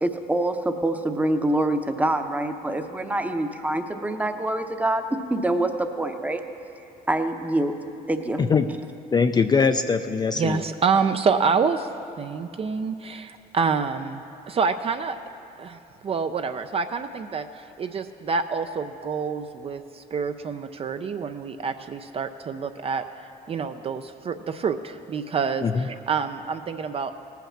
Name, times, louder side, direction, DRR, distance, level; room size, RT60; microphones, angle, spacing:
voice 1, 0.0-5.0 5.3-6.4 7.1-7.8 8.1-8.4, right 1 dB, 10° right, 7 dB, 0.7 m, -25 dB
voice 2, 9.1-10.6 25.6-25.8, left 5 dB, 25° left, 8 dB, 0.4 m, -21 dB
voice 3, 10.4-11.9 12.2-15.2 15.6-15.8 16.0-23.0 23.5-27.1, right 5 dB, 35° right, 8 dB, 0.4 m, -27 dB
17.5 x 5.8 x 7.3 m, 2.9 s
cardioid pair, 110°, 17 cm